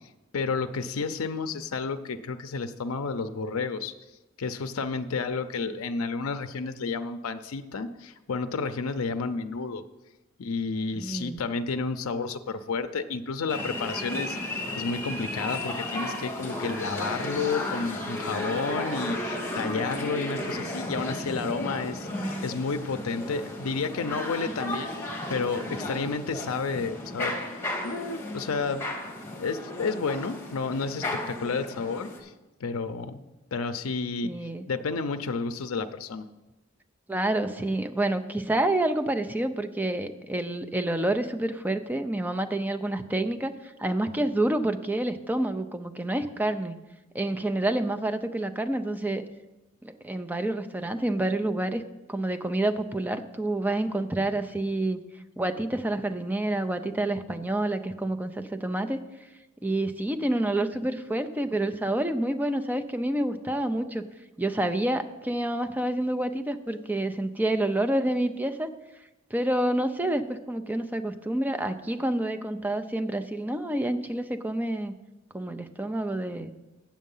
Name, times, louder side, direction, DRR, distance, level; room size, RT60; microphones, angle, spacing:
voice 1, 0.3-3.9 4.4-9.8 10.4-24.9 25.3-27.4 27.8-28.8 29.4-32.3 32.6-33.2 33.5-34.3 34.7-36.3, left 4 dB, 85° left, 8 dB, 0.5 m, -31 dB
voice 2, 11.0-11.4 34.2-34.7 37.1-43.5 43.8-46.7 47.1-49.2 49.8-51.8 52.1-55.0 55.4-59.0 59.6-64.0 64.4-68.7 69.3-74.9 75.3-76.5, right 1 dB, 10° right, 9 dB, 0.5 m, -28 dB
sound 1, 13.5-32.2, left 1 dB, 10° left, 1.5 m, -34 dB
8.9 x 7.4 x 5.5 m, 1.0 s
head